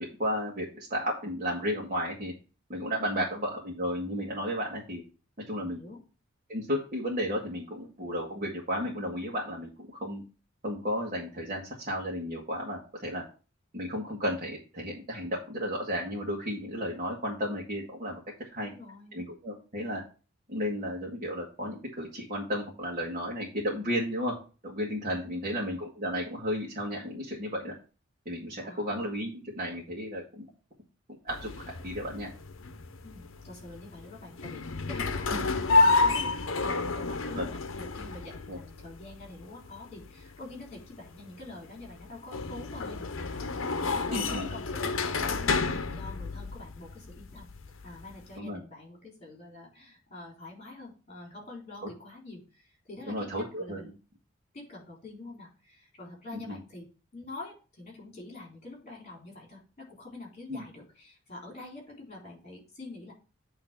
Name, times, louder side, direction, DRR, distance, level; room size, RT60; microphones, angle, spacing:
voice 1, 0.2-2.3 2.7-5.0 5.5-5.8 6.5-10.2 10.6-13.2 13.7-18.2 18.5-18.7 19.1-20.0 20.5-24.3 24.6-27.7 28.2-30.5 31.2-31.5 31.8-32.3 35.3-35.4 37.3-37.5 38.5-38.6 44.1-44.5 48.4-48.6 53.1-53.8 56.3-56.6 60.5-60.6, equal, 40° right, -3 dB, 1.7 m, -33 dB
voice 2, 5.6-6.0 18.6-19.2 25.3-25.5 28.6-28.9 33.0-36.3 36.6-43.4 43.8-45.0 45.2-47.5 47.8-53.9 54.5-56.9 57.1-63.1, left 2 dB, 35° left, -1 dB, 3.8 m, -46 dB
sound 1, 31.3-48.4, left 3 dB, 80° left, 0.7 m, -31 dB
8.7 x 3.3 x 5.9 m, 0.36 s
head